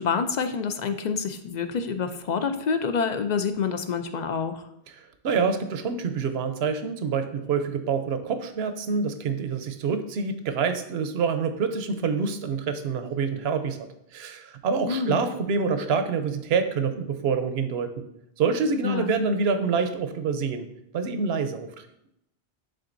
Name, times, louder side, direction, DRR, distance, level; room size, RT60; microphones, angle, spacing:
voice 1, 0.0-4.6 14.9-15.2 18.8-19.1, left 5 dB, 55° left, 8 dB, 0.5 m, -27 dB
voice 2, 5.0-13.8 14.1-17.9 18.4-20.7 20.9-21.7, right 5 dB, 75° right, 8 dB, 0.9 m, -26 dB
10.0 x 3.8 x 2.6 m, 0.79 s
omnidirectional pair, 1.1 m